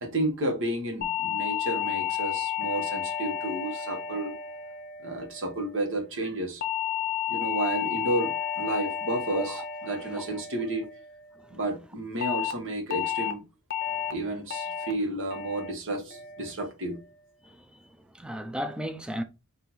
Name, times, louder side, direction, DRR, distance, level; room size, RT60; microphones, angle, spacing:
voice 1, 0.0-4.3 5.0-6.6 7.3-10.9 11.5-13.4 14.1-17.0, right 1 dB, 60° right, 1.3 m, -31 dB
sound 1, 1.0-5.5 6.6-11.1 12.2-12.5 12.9-13.3 13.7-14.1 14.5-14.9 15.3-15.7 16.1-16.5, left 9 dB, 45° left, 0.6 m, -32 dB
voice 2, 18.1-19.2, equal, 5° right, 0.4 m, -35 dB
4.4 x 2.7 x 3.9 m
head